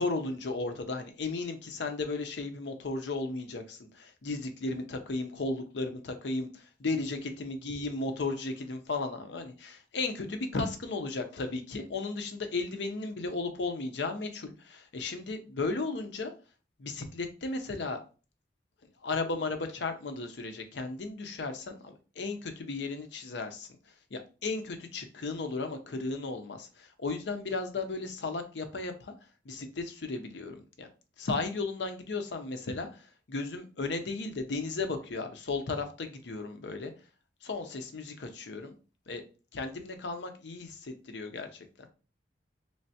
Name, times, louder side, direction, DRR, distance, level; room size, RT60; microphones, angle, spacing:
voice 1, 0.0-16.3 16.8-18.0 19.0-23.7 24.1-29.1 29.4-30.9 31.2-36.9 37.4-38.7 39.1-39.2 39.5-41.9, left 3 dB, 80° left, 6 dB, 0.6 m, -35 dB
3.3 x 3.1 x 2.8 m, 0.35 s
head